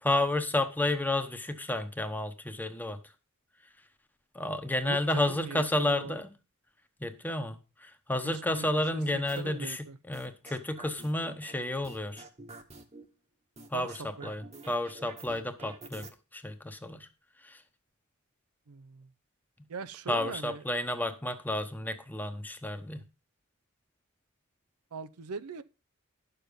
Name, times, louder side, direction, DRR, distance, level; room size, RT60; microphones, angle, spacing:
voice 1, 0.0-3.0 4.3-6.2 7.0-12.3 13.7-16.1 16.3-17.1 17.4-17.6 20.1-23.0, left 1 dB, 10° left, 1.0 m, -31 dB
voice 2, 4.8-6.2 8.2-8.7 8.9-10.0 13.7-13.9 14.2-14.3 18.7-19.1 19.7-20.6 24.9-25.6, right 4 dB, 80° right, 0.6 m, -41 dB
sound 1, 9.3-9.6 10.1-11.5 11.8-13.0 13.6-16.1, right 3 dB, 30° right, 1.2 m, -48 dB
10.5 x 6.9 x 5.2 m
head